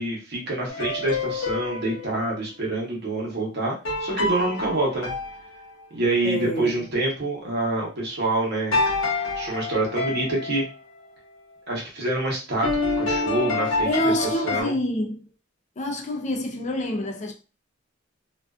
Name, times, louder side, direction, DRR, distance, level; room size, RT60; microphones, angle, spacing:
voice 1, 0.0-5.1 5.9-8.8 9.3-10.7 11.7-12.7 13.0-14.1 14.4-14.7, right 2 dB, 55° right, 0.9 m, -26 dB
sound 1, 0.7-2.2 3.9-6.1 8.7-10.7 12.6-14.6, left 3 dB, 70° left, 0.7 m, -27 dB
voice 2, 6.2-6.9 13.9-15.3 15.8-17.3, left 1 dB, 35° left, 0.4 m, -27 dB
2.5 x 2.3 x 2.3 m
head